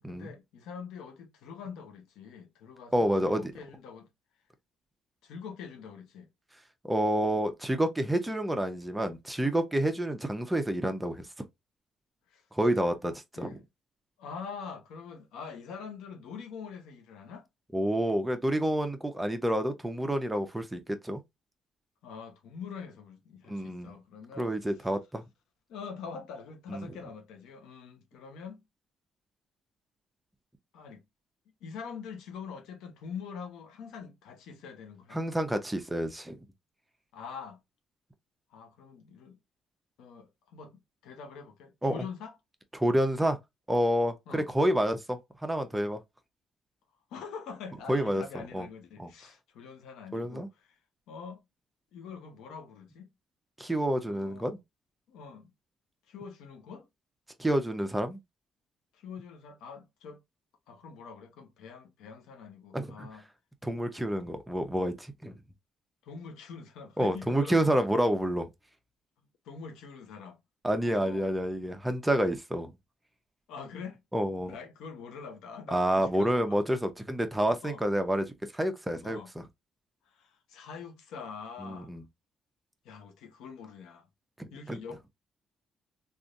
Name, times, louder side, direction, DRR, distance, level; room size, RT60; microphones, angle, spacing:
voice 1, 0.1-4.1 5.2-6.3 12.3-12.4 12.9-13.7 14.2-17.5 22.0-24.8 25.7-28.6 30.7-31.0 31.6-35.2 37.1-37.6 38.5-39.4 40.0-42.4 44.3-44.5 47.1-50.8 51.1-51.4 51.9-53.1 54.1-54.5 55.1-55.5 56.1-56.9 58.9-60.2 60.7-63.2 66.0-67.8 69.4-70.4 70.8-71.3 73.5-74.0 74.4-76.6 77.6-77.8 79.0-79.3 80.1-82.0 82.8-84.1 84.5-85.1, left 6 dB, 90° left, 0.9 m, -44 dB
voice 2, 2.9-3.5 6.8-11.3 12.5-13.1 13.4-13.6 17.7-21.2 23.5-23.9 24.4-25.2 26.7-26.8 35.1-36.4 41.8-41.9 42.7-43.4 43.7-46.0 47.9-48.2 48.5-48.7 49.0-49.1 50.1-50.5 53.6-54.6 57.4-58.2 62.7-63.1 63.6-65.3 67.0-68.5 70.6-72.7 74.1-74.5 75.7-79.2 81.6-82.0 84.4-84.8, right 1 dB, 10° right, 0.7 m, -28 dB
3.4 x 2.6 x 2.5 m
cardioid pair, 90°, 0 cm